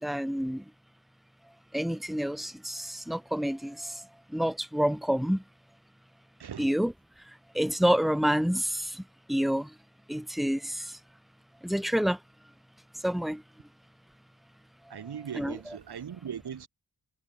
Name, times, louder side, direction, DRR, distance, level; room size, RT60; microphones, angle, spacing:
voice 1, 0.0-0.6 1.7-4.0 4.3-5.4 6.6-6.9 7.5-9.0 9.3-9.7 10.1-10.9 11.6-12.2 13.0-13.4 15.4-15.6, equal, ahead, 2.4 m, -28 dB
voice 2, 6.4-6.7 14.9-16.7, right 8 dB, 85° right, 4.2 m, -39 dB
wide cardioid pair, 120°, 38 cm